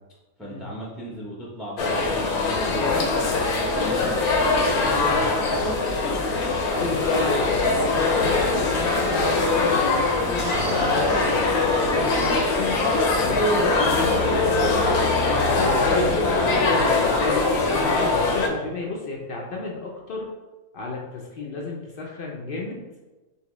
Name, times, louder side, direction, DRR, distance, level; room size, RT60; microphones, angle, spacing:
voice 1, 0.4-5.3 5.7-6.2 10.9-11.3 15.1-17.0, equal, ahead, -4 dB, 0.4 m, -35 dB
sound 1, 1.8-18.5, left 3 dB, 90° left, 1.1 m, -22 dB
voice 2, 6.7-11.2 11.4-12.9 13.2-14.8 16.5-20.3 20.7-22.8, left 3 dB, 70° left, -2 dB, 0.5 m, -32 dB
sound 2, 10.4-14.8, right 4 dB, 65° right, 0.7 m, -35 dB
5.5 x 2.1 x 3.0 m, 1.2 s
omnidirectional pair, 1.5 m